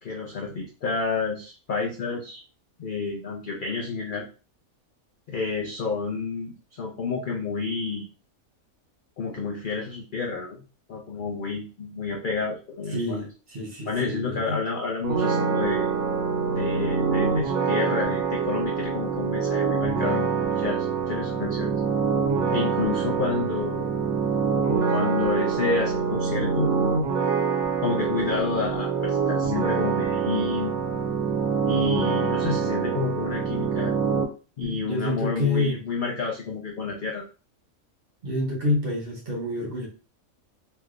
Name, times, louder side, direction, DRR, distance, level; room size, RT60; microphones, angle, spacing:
voice 1, 0.0-2.4 2.8-4.2 5.3-8.1 9.2-10.6 10.9-13.2 13.9-15.9 16.5-21.8 22.5-23.9 24.9-26.7 27.8-30.7 31.7-33.9 34.6-37.2, left 4 dB, 75° left, 0 dB, 0.4 m, -30 dB
voice 2, 12.9-14.6 34.6-35.8 38.2-39.9, left 2 dB, 45° right, -2 dB, 1.0 m, -28 dB
sound 1, 15.0-34.2, right 6 dB, 75° right, 1.2 m, -25 dB
3.2 x 2.7 x 2.4 m, 0.34 s
omnidirectional pair, 1.5 m